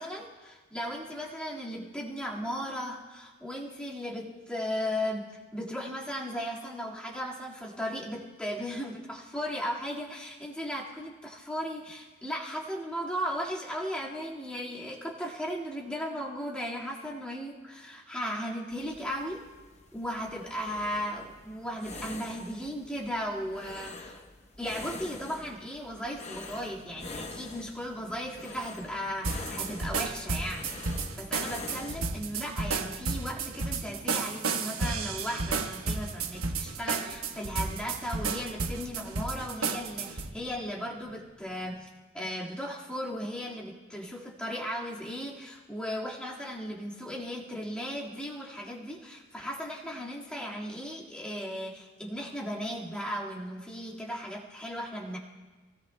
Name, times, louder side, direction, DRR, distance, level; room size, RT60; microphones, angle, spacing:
voice 1, 0.0-19.4 19.9-24.2 24.6-30.7 31.2-41.9 42.1-55.2, equal, 5° left, -5 dB, 1.8 m, -36 dB
sound 1, 18.7-32.0, left 3 dB, 30° left, 0.9 m, -45 dB
sound 2, 26.4-41.8, equal, 10° right, 3.9 m, -55 dB
sound 3, 29.2-40.3, right 4 dB, 90° right, 1.1 m, -32 dB
28.5 x 17.5 x 2.2 m, 1.3 s
head